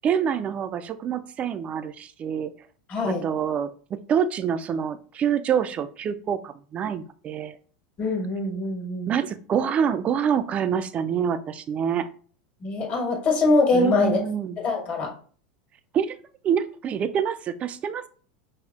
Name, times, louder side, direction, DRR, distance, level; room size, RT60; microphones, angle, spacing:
voice 1, 0.0-2.5 3.1-7.5 9.1-12.1 13.7-14.6 15.9-16.2 16.4-18.1, right 8 dB, 30° right, 12 dB, 0.3 m, -26 dB
voice 2, 2.9-3.2 8.0-9.2 12.6-14.2 14.6-15.1, left 3 dB, 35° left, 1 dB, 1.2 m, -23 dB
5.0 x 2.0 x 2.3 m, 0.42 s
hypercardioid pair, 110°, 4 cm